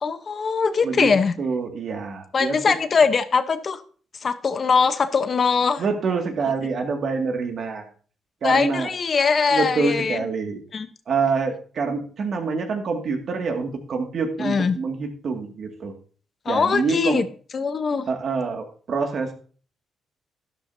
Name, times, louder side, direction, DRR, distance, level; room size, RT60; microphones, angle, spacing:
voice 1, 0.0-1.4 2.3-3.8 4.2-5.8 8.4-10.3 10.7-10.9 14.4-14.8 16.4-17.3 17.5-18.0, left 5 dB, 45° left, 10 dB, 0.9 m, -21 dB
voice 2, 1.4-2.8 5.8-7.9 8.4-8.9 9.5-10.6 11.1-15.9 16.5-17.2 18.1-19.3, right 4 dB, 55° right, 3 dB, 2.2 m, -26 dB
12.0 x 11.0 x 2.8 m, 0.42 s
cardioid pair, 90°, 0 cm